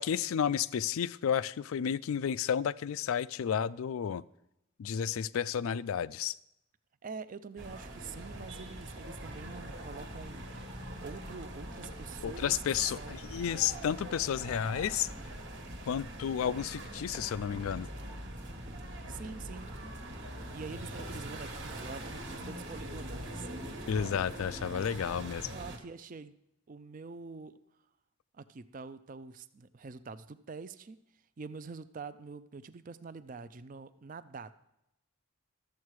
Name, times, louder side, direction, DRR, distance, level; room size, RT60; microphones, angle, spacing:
voice 1, 0.0-4.2 4.8-6.4 12.2-15.1 15.9-17.9 23.9-25.5, left 8 dB, 75° left, 18 dB, 0.3 m, -32 dB
voice 2, 7.0-10.5 11.0-13.1 19.1-19.7 20.5-23.5 25.5-26.3 26.7-27.6 28.3-31.0 31.4-34.6, right 5 dB, 40° right, 13 dB, 0.4 m, -45 dB
sound 1, 7.6-25.8, right 1 dB, 55° right, 1.3 m, -43 dB
12.5 x 7.5 x 4.7 m, 0.84 s
head